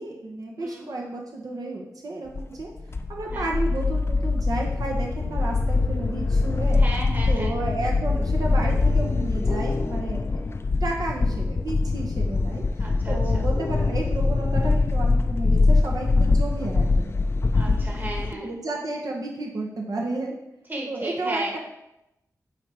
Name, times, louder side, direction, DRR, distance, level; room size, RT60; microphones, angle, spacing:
voice 1, 0.0-2.7 3.1-6.8 7.3-10.4 10.8-12.6 13.1-17.1 17.6-17.8 18.3-20.4 20.9-21.6, right 2 dB, 75° right, -1 dB, 1.0 m, -32 dB
voice 2, 0.6-0.9 3.3-3.5 6.8-7.5 12.8-13.4 17.5-18.5 20.7-21.6, right 1 dB, 30° right, -1 dB, 1.4 m, -34 dB
sound 1, 2.3-18.3, left 3 dB, 45° left, 0.4 m, -23 dB
9.0 x 4.3 x 3.4 m, 0.88 s
wide cardioid pair, 100°, 6 cm